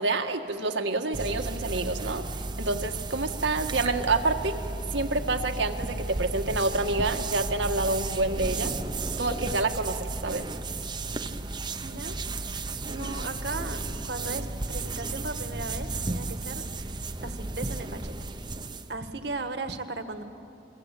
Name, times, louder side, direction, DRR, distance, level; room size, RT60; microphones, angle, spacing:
voice 1, 0.0-2.2 2.6-4.6 4.9-8.7 9.2-10.4, right 3 dB, 80° right, 4 dB, 1.7 m, -28 dB
sound 1, 1.1-18.9, right 2 dB, 25° right, 0.9 m, -34 dB
voice 2, 11.8-12.2 12.4-12.6 12.9-16.6 17.2-18.1 18.9-20.2, right 3 dB, 65° right, 8 dB, 1.7 m, -36 dB
28.5 x 22.0 x 8.4 m, 2.7 s
head